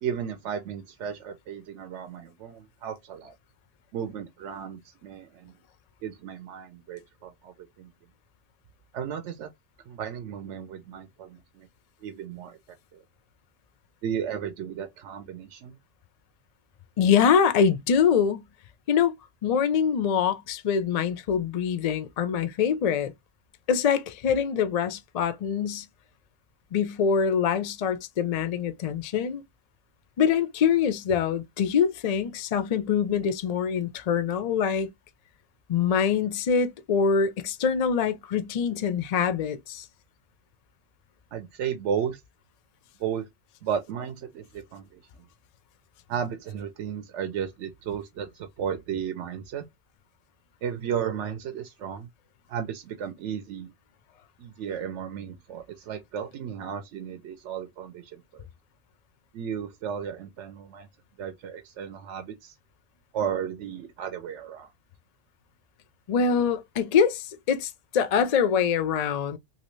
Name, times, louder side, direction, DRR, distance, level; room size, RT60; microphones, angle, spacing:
voice 1, 0.0-3.3 3.9-5.5 6.0-7.9 8.9-9.5 9.9-11.7 12.0-12.6 12.9-13.0 14.0-15.8 41.3-42.2 43.0-43.3 43.6-45.0 46.1-49.6 50.6-52.1 52.5-53.7 54.4-58.5 59.3-60.9 61.2-62.5 63.1-64.7, right 8 dB, 70° right, 0.9 m, -34 dB
voice 2, 17.0-18.4 18.9-19.1 19.4-23.1 23.7-25.9 26.7-29.4 30.2-34.9 35.7-39.8 66.1-69.4, left 7 dB, 65° left, 0.4 m, -24 dB
2.9 x 2.8 x 3.0 m
omnidirectional pair, 1.3 m